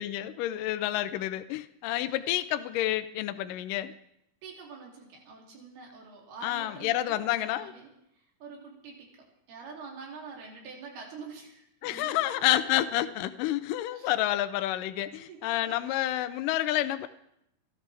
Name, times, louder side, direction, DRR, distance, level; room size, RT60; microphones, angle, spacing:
voice 1, 0.0-3.9 6.4-7.7 11.8-17.1, left 14 dB, 80° left, 10 dB, 1.9 m, -29 dB
voice 2, 4.4-7.9 8.4-12.4 13.9-14.1 15.3-15.8, right 5 dB, 70° right, -1 dB, 4.9 m, -46 dB
29.5 x 12.5 x 3.4 m, 0.79 s
omnidirectional pair, 4.8 m